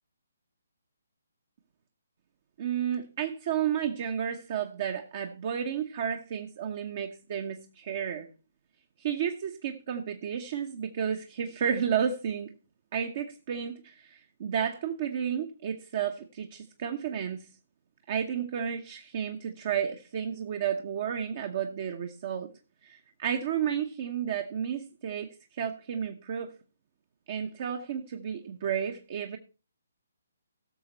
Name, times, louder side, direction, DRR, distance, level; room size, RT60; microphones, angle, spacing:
voice 1, 2.6-8.3 9.0-12.5 12.9-17.5 18.1-22.5 22.8-26.5 27.3-29.4, right 8 dB, 40° right, 6 dB, 1.0 m, -32 dB
17.0 x 6.8 x 4.1 m, 0.35 s
figure-of-eight pair, 135°, 0 cm